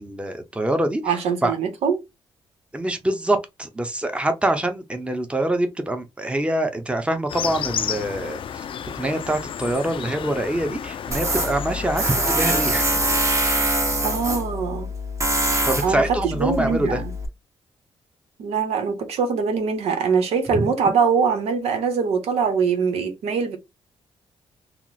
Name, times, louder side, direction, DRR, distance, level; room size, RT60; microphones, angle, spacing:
voice 1, 0.0-1.2 1.4-1.5 2.7-8.4 8.9-12.9 15.5-17.0 20.5-20.6, right 1 dB, 10° right, 0.8 m, -25 dB
voice 2, 1.0-2.0 14.0-14.9 15.8-17.1 18.4-23.6, right 6 dB, 90° right, 0.8 m, -23 dB
sound 1, 7.3-13.2, left 8 dB, 60° left, 0.4 m, -32 dB
Tools, 11.1-17.3, right 1 dB, 30° right, 1.0 m, -24 dB
2.9 x 2.0 x 3.9 m
cardioid pair, 75°, 10 cm